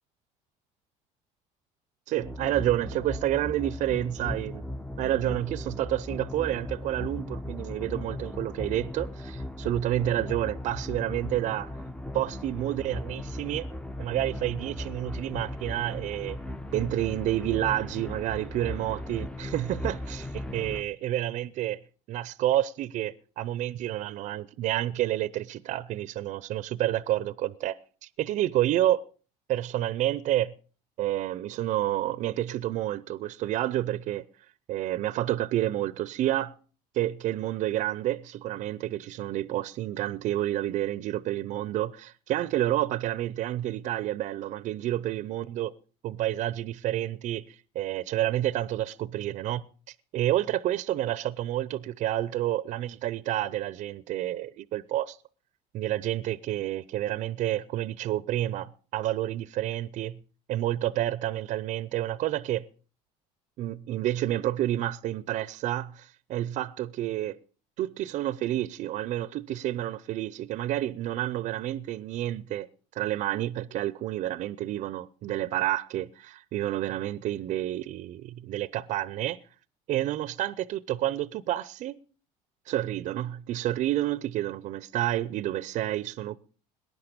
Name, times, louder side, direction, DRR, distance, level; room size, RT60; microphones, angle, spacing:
voice 1, 2.1-4.6 5.0-11.7 12.1-13.7 14.0-16.4 16.7-21.8 22.1-27.8 28.0-29.0 29.5-30.5 31.0-34.2 34.7-36.5 36.9-45.7 46.0-55.2 55.7-60.2 60.5-62.6 63.6-67.4 67.8-72.7 72.9-79.4 79.9-82.0 82.7-86.4, right 13 dB, 55° right, 0.6 m, -29 dB
sound 1, 2.2-20.8, left 1 dB, 5° left, 0.6 m, -37 dB
19.0 x 10.5 x 5.2 m
cardioid pair, 115°, 15 cm